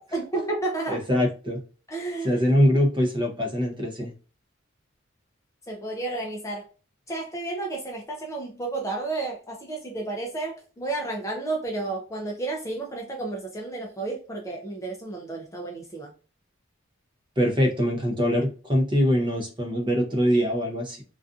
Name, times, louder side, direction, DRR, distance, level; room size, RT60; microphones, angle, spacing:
voice 1, 0.0-1.0 1.9-2.4 5.7-6.7 7.1-16.1, right 2 dB, 15° left, 0.4 m, -32 dB
voice 2, 0.9-1.6 2.2-4.1 17.4-21.0, equal, 25° right, 0.6 m, -23 dB
2.5 x 2.3 x 2.4 m
head